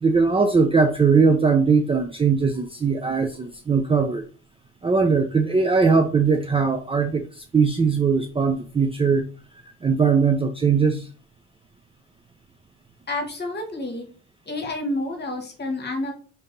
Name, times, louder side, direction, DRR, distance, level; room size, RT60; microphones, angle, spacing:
voice 1, 0.0-4.3 4.8-9.2 9.8-11.1, right 5 dB, 15° right, 5 dB, 0.5 m, -20 dB
voice 2, 13.1-14.1 14.4-16.1, left 2 dB, 30° left, 4 dB, 1.4 m, -29 dB
3.4 x 2.8 x 3.9 m, 0.39 s
supercardioid pair, 75°, 33 cm